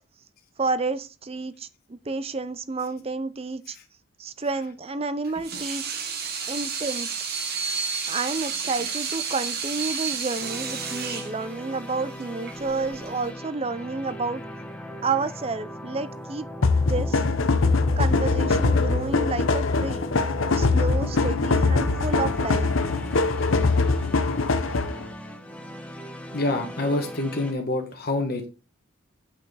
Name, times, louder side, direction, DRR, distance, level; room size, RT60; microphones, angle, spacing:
voice 1, 0.6-3.8 4.2-6.0 6.5-7.1 8.1-14.4 15.0-16.5 16.9-17.2 18.0-20.1 20.5-22.7, right 3 dB, 30° right, 0.6 m, -30 dB
Water tap faucet / Sink (filling or washing), 5.2-13.3, right 6 dB, 45° right, 1.5 m, -31 dB
sound 1, 10.4-27.5, equal, 5° left, 1.1 m, -39 dB
sound 2, 16.6-25.1, left 3 dB, 70° left, 0.7 m, -22 dB
voice 2, 26.3-28.5, left 2 dB, 45° left, 1.3 m, -26 dB
8.4 x 5.7 x 4.0 m
head